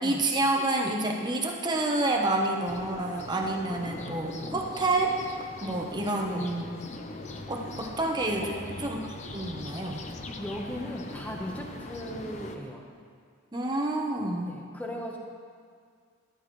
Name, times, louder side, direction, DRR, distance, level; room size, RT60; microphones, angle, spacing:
voice 1, 0.0-5.1 5.6-6.7 7.5-8.6 8.8-9.0 9.3-10.0 13.5-14.6, right 2 dB, 20° right, 1 dB, 1.0 m, -28 dB
sound 1, 2.7-12.6, left 2 dB, 35° left, 0.6 m, -41 dB
voice 2, 8.4-8.9 10.4-12.8 14.4-15.2, equal, 10° left, 0 dB, 1.1 m, -38 dB
13.5 x 12.5 x 3.2 m, 2.1 s
head